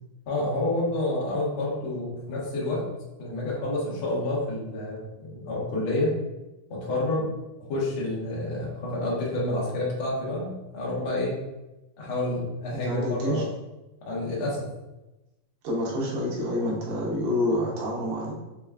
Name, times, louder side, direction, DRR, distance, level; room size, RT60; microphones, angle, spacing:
voice 1, 0.3-2.8 3.2-6.1 6.7-7.3 7.6-11.3 12.0-13.5 14.0-14.7, left 2 dB, 80° left, -6 dB, 1.1 m, -29 dB
voice 2, 12.8-13.4 15.6-18.3, left 1 dB, 85° right, -5 dB, 3.0 m, -27 dB
6.7 x 2.3 x 2.4 m, 1.0 s
omnidirectional pair, 4.4 m